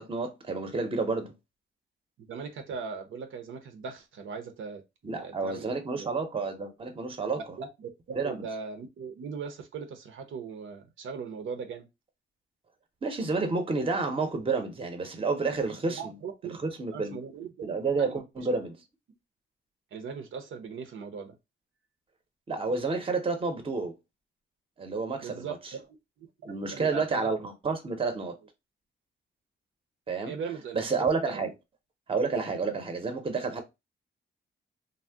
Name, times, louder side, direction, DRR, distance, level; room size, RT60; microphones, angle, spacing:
voice 1, 0.0-1.3 5.0-7.6 8.1-8.4 13.0-16.1 16.4-17.2 17.6-18.8 22.5-23.9 24.8-25.5 26.4-28.4 30.1-30.3 30.7-31.5 32.1-33.6, right 4 dB, 25° right, 0.6 m, -30 dB
voice 2, 2.2-6.1 7.3-11.9 15.9-16.6 16.9-17.7 18.0-18.2 19.9-21.3 25.2-26.3 26.7-27.3 30.2-31.5, right 5 dB, 80° right, 0.6 m, -39 dB
2.6 x 2.0 x 3.4 m
cardioid pair, 115°, 20 cm